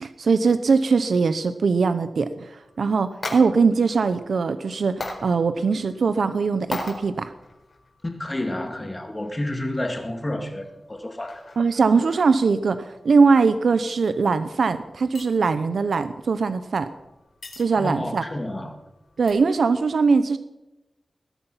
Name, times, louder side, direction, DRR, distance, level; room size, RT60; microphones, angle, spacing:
voice 1, 0.0-2.5 2.8-7.3 11.6-16.9 17.6-18.2 19.2-20.4, right 4 dB, 80° right, 11 dB, 0.8 m, -21 dB
sound 1, 2.6-19.3, left 2 dB, 50° left, 4.4 m, -42 dB
voice 2, 8.2-11.4 17.7-18.7, left 1 dB, 20° left, 4 dB, 2.3 m, -30 dB
20.5 x 11.5 x 5.7 m, 0.97 s
wide cardioid pair, 130°, 0 cm